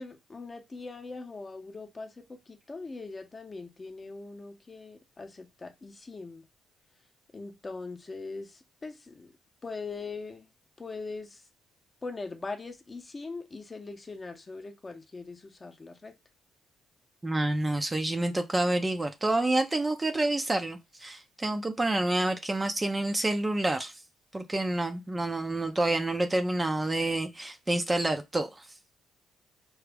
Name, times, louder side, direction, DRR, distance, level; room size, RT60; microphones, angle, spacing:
voice 1, 0.0-6.5 7.3-9.3 9.6-10.5 10.8-11.4 12.0-16.2, left 3 dB, 30° left, 0.7 m, -41 dB
voice 2, 17.2-23.9 24.3-28.6, right 2 dB, 20° right, 0.5 m, -28 dB
4.6 x 2.0 x 3.4 m
cardioid pair, 90°, 0 cm